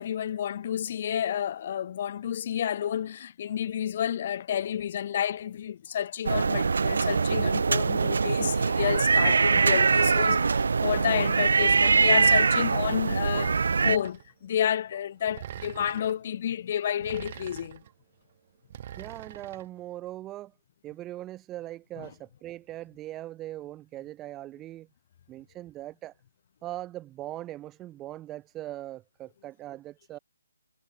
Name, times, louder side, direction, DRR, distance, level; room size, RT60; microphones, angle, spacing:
voice 1, 0.0-17.8 22.0-22.1, left 9 dB, 40° left, 0.7 m, -30 dB
sound 1, 6.2-14.0, right 4 dB, 65° right, 0.6 m, -23 dB
sound 2, 11.6-12.5 13.4-14.3 15.3-16.2 17.0-17.9 18.7-19.7, right 10 dB, 35° right, 2.8 m, -42 dB
voice 2, 19.0-20.5 20.8-24.9 25.3-26.1 26.6-30.2, right 14 dB, 15° right, 1.3 m, -40 dB
hypercardioid pair, 155°, 0 cm